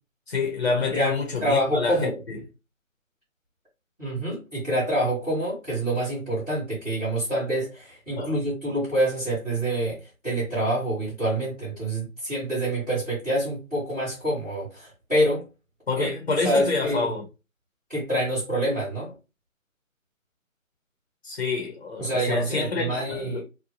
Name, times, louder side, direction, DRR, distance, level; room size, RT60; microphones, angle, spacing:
voice 1, 0.3-2.4 8.2-8.3 15.9-17.2 21.2-23.4, left 4 dB, 50° left, 0.8 m, -27 dB
voice 2, 0.9-2.2 4.0-15.4 16.0-17.1 17.9-19.1 22.0-23.4, right 1 dB, ahead, 0.9 m, -26 dB
2.6 x 2.2 x 2.8 m
figure-of-eight pair, 165°, 40 cm